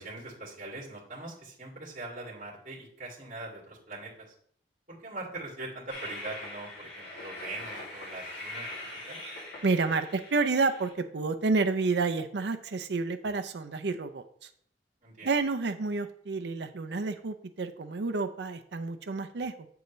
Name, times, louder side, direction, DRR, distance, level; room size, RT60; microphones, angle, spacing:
voice 1, 0.0-4.3 4.9-8.8 9.1-9.2 15.0-15.3, right 2 dB, 45° right, -6 dB, 2.5 m, -42 dB
Train, 5.9-10.9, left 2 dB, 85° left, 2.5 m, -42 dB
voice 2, 9.6-14.5 15.2-19.7, right 4 dB, 80° right, 7 dB, 0.5 m, -30 dB
7.7 x 6.9 x 3.2 m, 0.63 s
head